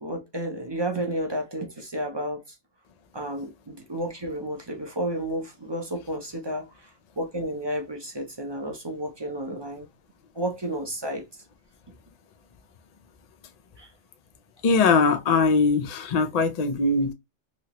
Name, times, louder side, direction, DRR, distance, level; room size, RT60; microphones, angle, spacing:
voice 1, 0.0-2.5 3.1-9.9 10.3-11.4 13.8-13.9, right 1 dB, 30° right, 0.5 m, -32 dB
voice 2, 14.6-17.1, left 4 dB, 60° left, 0.4 m, -21 dB
3.1 x 2.8 x 2.9 m
omnidirectional pair, 1.2 m